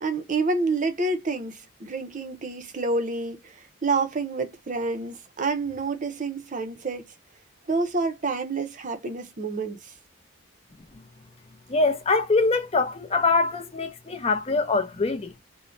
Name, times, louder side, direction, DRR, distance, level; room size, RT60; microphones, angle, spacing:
voice 1, 0.0-7.0 7.7-9.9, right 3 dB, 35° right, 0.5 m, -28 dB
voice 2, 11.7-15.3, left 3 dB, 30° left, 0.5 m, -24 dB
3.1 x 2.0 x 2.5 m
head